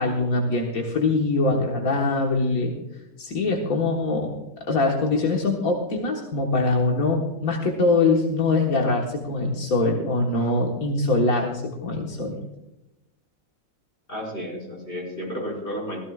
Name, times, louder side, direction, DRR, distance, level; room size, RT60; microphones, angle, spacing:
voice 1, 0.0-2.7 3.2-4.4 4.7-12.4, left 3 dB, 85° left, 0 dB, 1.9 m, -23 dB
voice 2, 14.1-16.0, equal, 40° left, -3 dB, 6.0 m, -32 dB
16.5 x 15.0 x 2.4 m, 0.93 s
omnidirectional pair, 1.5 m